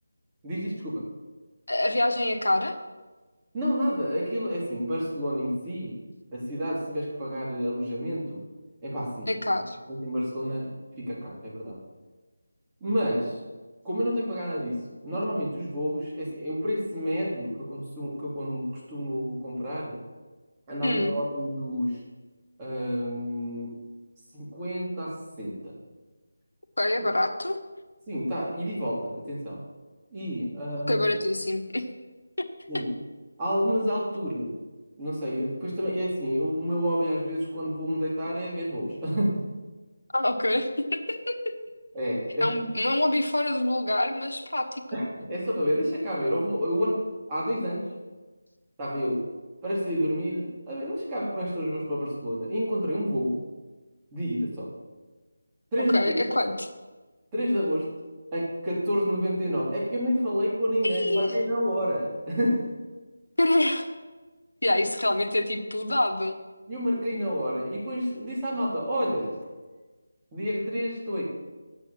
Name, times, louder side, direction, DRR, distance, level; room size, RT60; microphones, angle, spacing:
voice 1, 0.4-1.0 3.5-6.0 6.3-8.4 8.8-9.3 9.9-11.8 12.8-13.4 13.8-20.0 20.7-22.0 22.6-23.8 24.3-25.8 28.1-29.6 30.1-31.1 32.7-32.9 33.4-34.5 35.0-39.4 41.9-42.5 44.9-47.0 47.3-47.9 48.8-49.2 49.6-53.4 54.1-54.7 55.7-56.2 57.3-57.9 58.3-62.7 66.7-69.4 70.3-71.2, equal, 15° right, -7 dB, 3.4 m, -29 dB
voice 2, 1.7-2.8 9.3-9.8 20.8-21.1 26.8-27.6 30.9-31.8 40.1-41.5 42.4-44.8 55.9-56.7 60.8-61.3 63.4-63.9 64.6-66.3, left 1 dB, 85° left, 5 dB, 1.4 m, -25 dB
10.0 x 8.2 x 7.2 m, 1.3 s
figure-of-eight pair, 165°, 0 cm